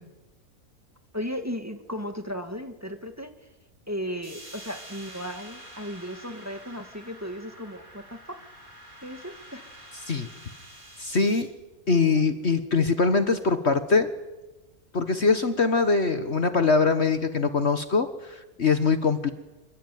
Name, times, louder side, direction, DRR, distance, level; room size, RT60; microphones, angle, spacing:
voice 1, 1.1-3.3 3.9-8.4 9.0-9.7, equal, 10° right, 6 dB, 2.1 m, -35 dB
sound 1, 4.2-11.4, right 1 dB, 65° right, 5.1 m, -47 dB
voice 2, 11.0-11.5 11.9-14.1 14.9-19.3, left 4 dB, 45° left, 9 dB, 1.6 m, -23 dB
27.0 x 23.0 x 9.4 m, 1.1 s
omnidirectional pair, 1.6 m